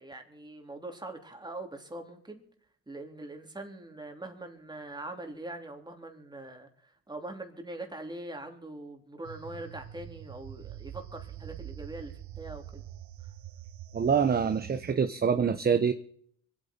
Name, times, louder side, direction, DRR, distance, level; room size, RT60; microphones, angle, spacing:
voice 1, 0.0-2.4 2.9-12.8, right 2 dB, 15° right, 4 dB, 3.2 m, -42 dB
sound 1, 9.2-14.9, right 11 dB, 70° right, 1.3 m, -45 dB
voice 2, 13.9-15.9, right 6 dB, 30° right, 9 dB, 0.9 m, -25 dB
25.0 x 8.7 x 4.4 m, 0.63 s
cardioid pair, 90°, 30 cm